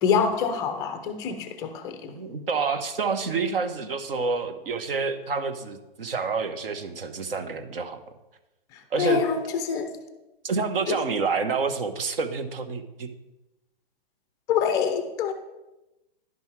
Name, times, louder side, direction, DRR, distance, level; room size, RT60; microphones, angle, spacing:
voice 1, 0.0-2.1 8.7-9.9 10.9-11.1 14.5-15.3, left 6 dB, 10° left, 9 dB, 0.4 m, -26 dB
voice 2, 2.1-8.0 8.9-9.2 10.4-13.1, right 4 dB, 65° right, 9 dB, 1.2 m, -28 dB
11.0 x 5.5 x 4.6 m, 1.0 s
hypercardioid pair, 145°, 30 cm